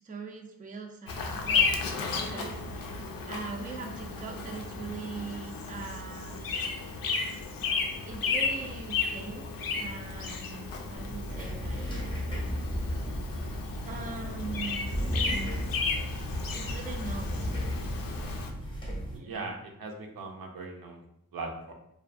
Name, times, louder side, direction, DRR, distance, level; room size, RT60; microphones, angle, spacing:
voice 1, 0.0-6.5 8.0-12.0 13.9-15.1 16.5-17.5 19.1-19.5, right 4 dB, 25° right, 3 dB, 0.4 m, -42 dB
Bird vocalization bird call bird song, 1.1-18.5, left 4 dB, 70° left, 0.5 m, -33 dB
sound 1, 11.0-19.2, equal, 15° left, 0.6 m, -35 dB
voice 2, 19.2-21.0 21.3-21.7, right 3 dB, 75° right, 2 dB, 0.5 m, -39 dB
2.5 x 2.3 x 2.4 m, 0.79 s
cardioid pair, 70°, 36 cm